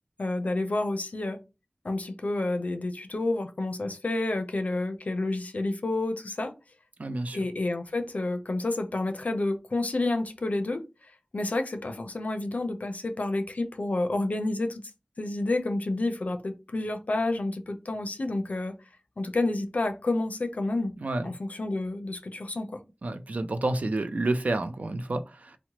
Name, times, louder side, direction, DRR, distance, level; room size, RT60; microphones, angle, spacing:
voice 1, 0.2-1.4 1.8-6.5 7.3-10.9 11.3-14.8 15.2-18.8 19.2-20.9 21.2-22.8, left 2 dB, 85° left, 0.4 m, -29 dB
voice 2, 7.0-7.4 21.0-21.3 23.0-25.6, right 2 dB, 80° right, 0.4 m, -29 dB
3.0 x 2.0 x 2.8 m
wide cardioid pair, 50°, 2 cm